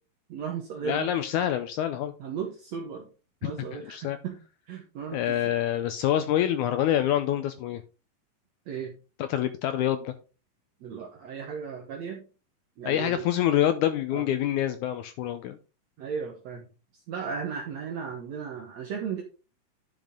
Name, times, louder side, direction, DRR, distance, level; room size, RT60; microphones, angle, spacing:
voice 1, 0.3-1.1 1.4-1.5 2.2-3.1 3.4-4.4 4.7-5.5 8.7-8.9 10.8-12.2 12.8-13.3 14.1-14.3 16.0-16.7 16.9-19.2, right 6 dB, 65° right, 2 dB, 1.9 m, -36 dB
voice 2, 0.8-2.1 3.4-4.2 5.1-7.8 9.3-10.1 12.9-15.6, left 11 dB, 80° left, 10 dB, 1.8 m, -26 dB
10.5 x 5.4 x 3.6 m, 0.33 s
omnidirectional pair, 4.0 m